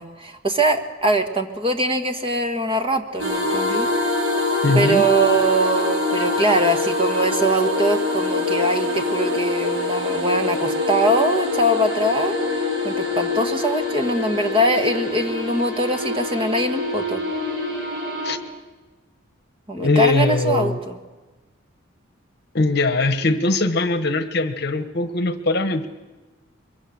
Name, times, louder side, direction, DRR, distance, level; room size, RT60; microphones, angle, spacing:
voice 1, 0.0-3.9 4.7-12.3 12.8-17.2 19.7-21.0, right 1 dB, 25° right, 5 dB, 1.6 m, -22 dB
sound 1, 3.2-18.4, left 2 dB, 65° right, 5.0 m, -24 dB
voice 2, 4.6-5.0 18.2-18.4 19.8-20.8 22.5-25.9, left 2 dB, 55° left, 9 dB, 1.3 m, -21 dB
23.5 x 23.0 x 6.5 m, 1.2 s
head